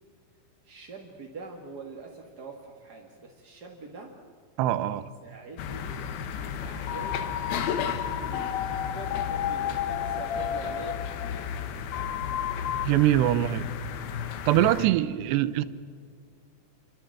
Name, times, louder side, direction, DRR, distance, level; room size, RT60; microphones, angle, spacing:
voice 1, 0.6-4.1 5.2-6.0 6.4-7.2 7.7-11.6, right 3 dB, 35° right, 0 dB, 1.6 m, -44 dB
voice 2, 4.6-5.0 12.9-13.7 14.5-15.6, right 13 dB, 85° right, 15 dB, 3.0 m, -23 dB
sound 1, 5.6-14.9, left 7 dB, 70° left, 3.0 m, -34 dB
sound 2, 6.6-12.9, left 10 dB, 85° left, 3.2 m, -32 dB
28.0 x 24.5 x 7.8 m, 2.1 s
omnidirectional pair, 4.7 m